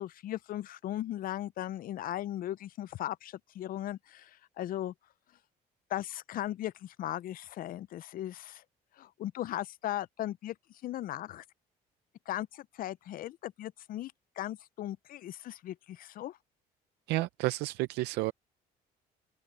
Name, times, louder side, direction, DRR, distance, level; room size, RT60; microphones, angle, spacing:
voice 1, 0.0-4.9 5.9-8.6 9.0-10.6 10.8-11.4 12.3-16.4, left 13 dB, 55° left, 0.5 m, -37 dB
voice 2, 17.1-18.3, right 19 dB, 90° right, 0.5 m, -31 dB
cardioid pair, 110°, 17 cm